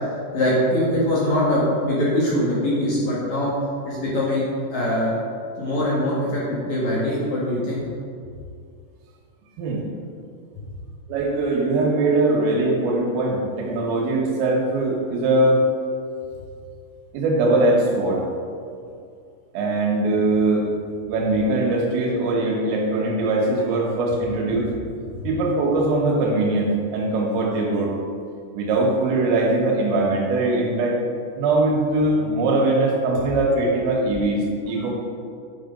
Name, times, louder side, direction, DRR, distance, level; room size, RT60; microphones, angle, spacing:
voice 1, 0.3-3.5 3.8-5.2 5.6-7.8, left 1 dB, 60° left, -7 dB, 2.1 m, -22 dB
voice 2, 11.1-15.6 17.1-18.3 19.5-20.7 21.1-24.7 25.3-27.9 28.5-31.0 31.4-34.9, right 2 dB, 80° right, -2 dB, 3.9 m, -21 dB
9.7 x 6.6 x 5.2 m, 2.3 s
omnidirectional pair, 5.9 m